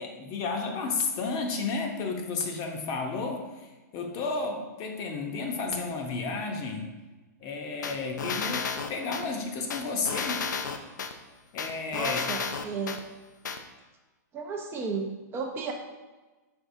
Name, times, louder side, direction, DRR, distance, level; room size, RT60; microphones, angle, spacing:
voice 1, 0.0-6.9 7.4-10.4 11.5-12.3, left 4 dB, 35° left, 3 dB, 0.7 m, -32 dB
sound 1, 7.8-9.2 9.7-11.1 11.6-13.0 13.4-13.6, left 5 dB, 85° left, 0.5 m, -32 dB
voice 2, 11.9-13.0 14.3-15.7, right 4 dB, 25° right, 2 dB, 0.5 m, -33 dB
5.1 x 3.9 x 2.6 m, 1.2 s
hypercardioid pair, 130°, 10 cm